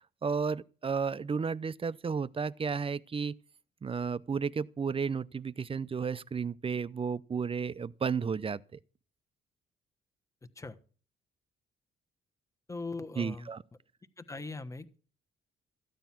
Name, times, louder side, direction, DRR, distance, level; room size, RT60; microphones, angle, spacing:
voice 1, 0.0-3.4 3.8-8.8 13.2-13.6, right 5 dB, 25° right, 0.6 m, -33 dB
voice 2, 12.7-13.5 14.2-15.0, left 3 dB, 15° left, 1.3 m, -40 dB
14.0 x 9.2 x 5.9 m
cardioid pair, 90°, 20 cm